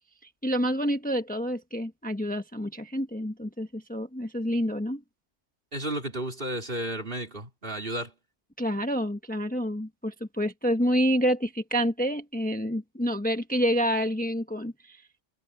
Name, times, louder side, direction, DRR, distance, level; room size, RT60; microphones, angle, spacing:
voice 1, 0.4-5.0 8.6-15.0, equal, 5° left, 1.2 m, -28 dB
voice 2, 5.7-8.1, right 1 dB, 45° right, 4.0 m, -33 dB
omnidirectional pair, 1.3 m